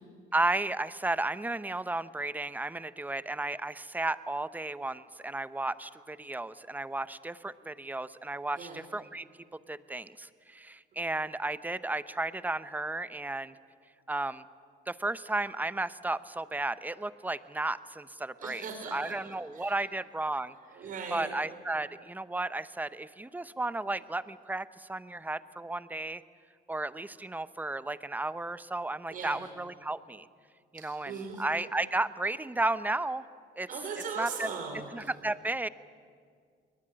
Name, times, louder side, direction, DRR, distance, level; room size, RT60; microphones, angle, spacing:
voice 1, 0.3-9.3 9.5-13.5 14.1-14.4 14.9-18.6 18.9-20.5 21.1-26.2 26.7-30.3 30.7-33.2 33.6-33.7 34.2-34.5 34.9-35.7, right 2 dB, 10° right, 15 dB, 0.7 m, -33 dB
voice 2, 18.4-19.7 20.7-21.4 29.1-29.4 30.7-31.5 33.7-35.1, right 5 dB, 55° right, 2 dB, 4.8 m, -40 dB
21.5 x 20.5 x 9.8 m, 2.1 s
cardioid pair, 110°, 17 cm